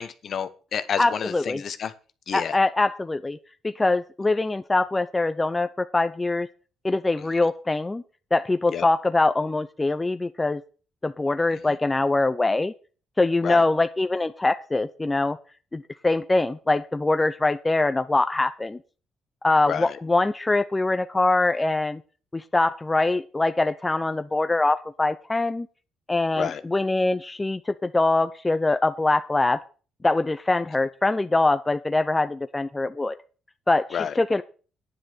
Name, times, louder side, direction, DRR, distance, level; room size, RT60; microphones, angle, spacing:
voice 1, 0.0-1.9 2.3-2.6 8.7-8.9 11.5-11.6 13.4-13.6 19.7-20.0 26.4-26.6 33.9-34.1, left 7 dB, 60° left, 12 dB, 1.0 m, -30 dB
voice 2, 1.0-1.6 2.3-3.4 3.6-6.5 6.8-8.0 8.3-10.6 11.0-12.7 13.2-15.4 15.7-18.8 19.4-22.0 22.3-25.7 26.1-29.6 30.0-33.1 33.7-34.4, left 2 dB, 20° left, 11 dB, 0.6 m, -23 dB
9.9 x 6.4 x 7.4 m, 0.37 s
cardioid pair, 90°, 0 cm